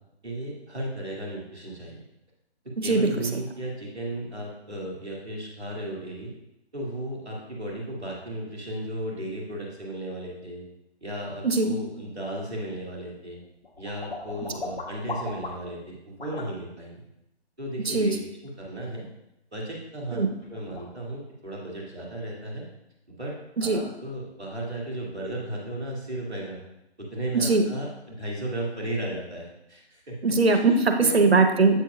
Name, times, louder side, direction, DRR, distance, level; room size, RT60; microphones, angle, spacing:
voice 1, 0.2-2.0 2.6-6.3 6.7-10.6 11.0-13.4 13.8-17.0 17.6-19.1 19.5-20.2 20.5-22.6 23.1-23.3 23.6-26.6 27.0-30.2 30.5-30.6 31.0-31.2, right 1 dB, 5° right, -15 dB, 0.6 m, -35 dB
voice 2, 2.8-3.3 11.4-11.7 17.8-18.1 20.1-20.3 23.6-23.8 27.3-27.6 30.2-31.8, right 3 dB, 65° right, 6 dB, 0.9 m, -21 dB
sound 1, 13.1-15.8 16.2-16.5 20.0-20.1 20.4-20.9, left 3 dB, 60° left, 1.9 m, -37 dB
8.0 x 7.5 x 2.3 m, 0.86 s
figure-of-eight pair, 155°, 33 cm